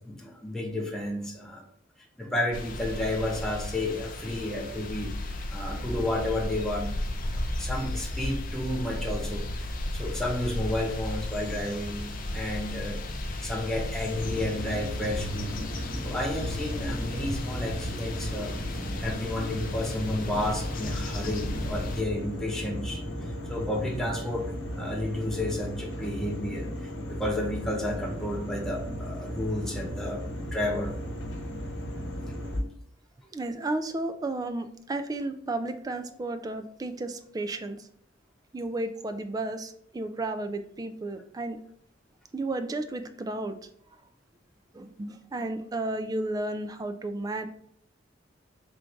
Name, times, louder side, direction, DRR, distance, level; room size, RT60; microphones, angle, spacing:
voice 1, 0.1-1.6 2.2-15.6 16.0-18.6 19.0-30.9, left 1 dB, 5° left, -2 dB, 0.7 m, -32 dB
sound 1, 2.5-22.0, left 1 dB, 50° left, 0.5 m, -35 dB
sound 2, 14.1-32.6, equal, 90° left, 0.9 m, -35 dB
voice 2, 33.3-37.9 38.5-41.6 42.3-43.6 44.7-47.5, right 2 dB, 20° right, 8 dB, 0.3 m, -33 dB
3.7 x 2.5 x 4.4 m, 0.65 s
head